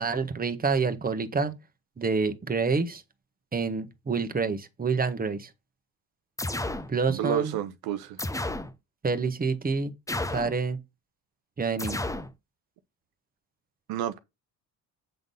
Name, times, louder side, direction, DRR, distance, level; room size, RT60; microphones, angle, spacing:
voice 1, 0.0-1.5 2.0-3.0 3.5-5.5 6.9-7.6 9.0-9.9 10.3-10.8 11.6-12.0, right 4 dB, 25° right, 1.2 m, -27 dB
sound 1, 6.4-6.9 8.2-8.7 10.1-10.6 11.8-12.3, left 1 dB, 10° left, 0.8 m, -32 dB
voice 2, 7.1-8.2 13.9-14.2, right 10 dB, 75° right, 0.8 m, -30 dB
8.0 x 3.7 x 5.5 m
supercardioid pair, 75°, 36 cm